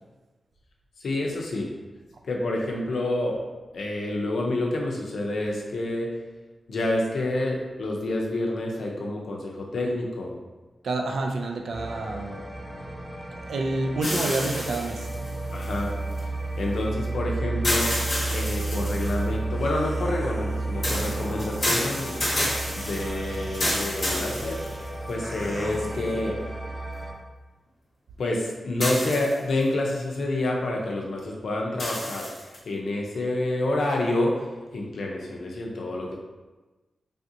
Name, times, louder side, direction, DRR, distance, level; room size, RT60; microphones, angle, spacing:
voice 1, 1.0-1.7 2.2-3.4 3.7-6.1 6.7-10.3 15.5-15.9 16.6-17.9 18.3-22.2 22.8-24.6 25.1-26.4 28.2-32.3 32.7-34.4 34.7-36.2, left 1 dB, 80° left, -1 dB, 0.5 m, -28 dB
voice 2, 10.8-12.4 13.4-15.1, right 2 dB, 80° right, 2 dB, 0.4 m, -28 dB
sound 1, 11.7-27.1, right 2 dB, 15° left, 0.6 m, -32 dB
sound 2, 14.0-16.2 17.6-19.3 20.8-25.1 25.7-25.8 28.8-29.6 31.8-32.6, left 1 dB, 35° left, 0.9 m, -29 dB
sound 3, 18.3-18.9 19.5-26.2, equal, 40° right, 0.8 m, -42 dB
3.3 x 2.7 x 2.5 m, 1.2 s
wide cardioid pair, 165°, 0 cm